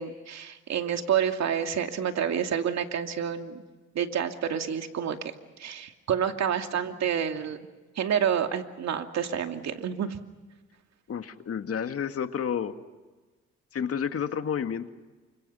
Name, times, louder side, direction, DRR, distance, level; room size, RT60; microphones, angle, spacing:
voice 1, 0.0-3.6 3.9-5.3 5.6-7.6 8.0-10.2, right 8 dB, 60° right, 5 dB, 2.5 m, -28 dB
voice 2, 11.1-12.7 13.7-14.9, left 7 dB, 50° left, 7 dB, 2.0 m, -30 dB
29.5 x 25.5 x 5.7 m, 1.3 s
cardioid pair, 90°, 30 cm